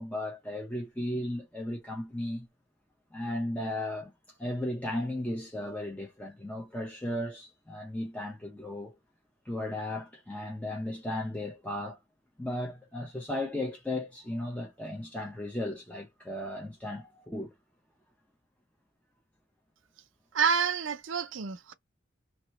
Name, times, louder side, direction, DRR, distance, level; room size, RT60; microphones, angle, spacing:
voice 1, 0.0-2.5 3.1-4.1 4.4-8.9 9.5-12.0 12.4-17.5, left 1 dB, 10° left, 0.7 m, -35 dB
voice 2, 20.3-21.7, right 6 dB, 85° right, 0.6 m, -28 dB
3.2 x 2.9 x 3.1 m
head